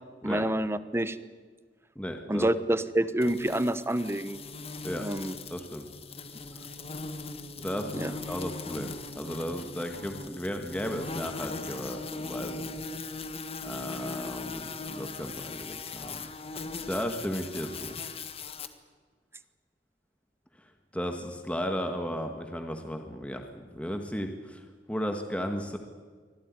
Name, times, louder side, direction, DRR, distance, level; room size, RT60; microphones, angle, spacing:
voice 1, 0.2-1.2 2.3-4.4 5.0-5.3 7.9-8.1, right 1 dB, 15° right, 14 dB, 1.0 m, -27 dB
voice 2, 2.0-2.6 4.8-5.1 5.5-5.9 7.6-12.8 13.6-16.3 16.5-18.0 20.9-24.6 24.9-25.8, equal, 5° left, 4 dB, 1.7 m, -35 dB
sound 1, 3.2-18.7, left 3 dB, 35° left, 1.7 m, -39 dB
25.0 x 17.0 x 9.7 m, 1.5 s
head